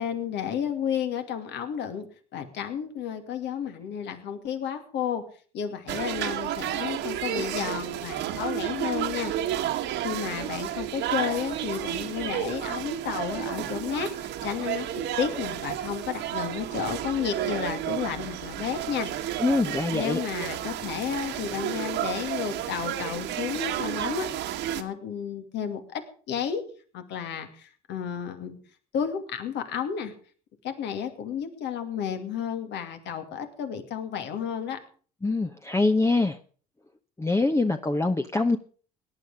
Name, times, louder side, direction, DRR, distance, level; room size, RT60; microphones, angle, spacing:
voice 1, 0.0-2.1 2.3-5.2 5.5-9.5 10.0-14.9 15.2-19.1 19.7-26.6 26.9-28.6 28.9-30.1 30.6-34.8, left 8 dB, 65° left, 7 dB, 2.5 m, -32 dB
sound 1, 5.9-24.8, right 11 dB, 65° right, 1.7 m, -31 dB
voice 2, 19.4-20.2 35.2-36.4 37.2-38.6, left 3 dB, 15° left, 7 dB, 1.0 m, -24 dB
18.0 x 10.5 x 5.0 m, 0.42 s
hypercardioid pair, 65°, 20 cm